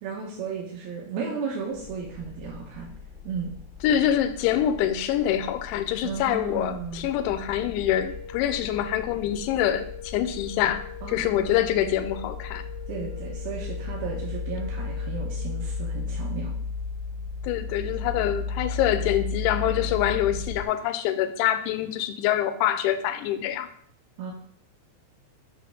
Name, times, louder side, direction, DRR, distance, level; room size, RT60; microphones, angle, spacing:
voice 1, 0.0-2.9 3.2-3.5 6.0-7.1 11.0-11.6 12.9-16.5 24.2-24.3, right 5 dB, 80° right, -2 dB, 2.3 m, -34 dB
sound 1, 1.7-20.6, left 4 dB, 30° right, 1.2 m, -35 dB
voice 2, 3.8-12.6 17.4-23.7, left 11 dB, 85° left, 9 dB, 2.8 m, -25 dB
sound 2, 7.8-16.0, left 10 dB, 50° right, 2.7 m, -44 dB
6.2 x 6.1 x 3.4 m, 0.63 s
omnidirectional pair, 5.6 m